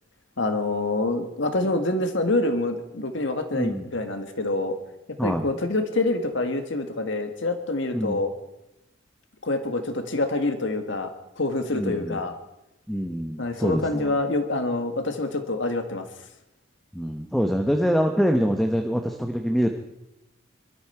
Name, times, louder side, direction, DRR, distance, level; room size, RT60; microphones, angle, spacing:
voice 1, 0.4-4.8 5.2-8.3 9.4-11.1 11.4-12.3 13.4-16.1, left 2 dB, 65° left, 7 dB, 1.8 m, -26 dB
voice 2, 3.5-3.9 5.2-5.4 7.9-8.2 11.7-12.2 12.9-14.1 16.9-19.8, equal, ahead, 4 dB, 0.8 m, -25 dB
23.5 x 13.5 x 4.5 m, 0.89 s
head